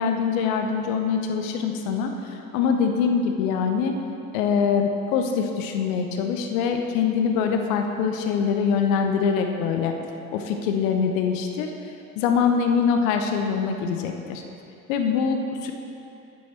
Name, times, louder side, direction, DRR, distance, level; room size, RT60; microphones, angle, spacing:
voice 1, 0.0-4.0 4.3-9.9 10.3-11.7 12.2-14.4 14.9-15.7, left 6 dB, 65° left, 4 dB, 0.9 m, -24 dB
9.4 x 8.4 x 4.5 m, 2.7 s
figure-of-eight pair, 55°, 43 cm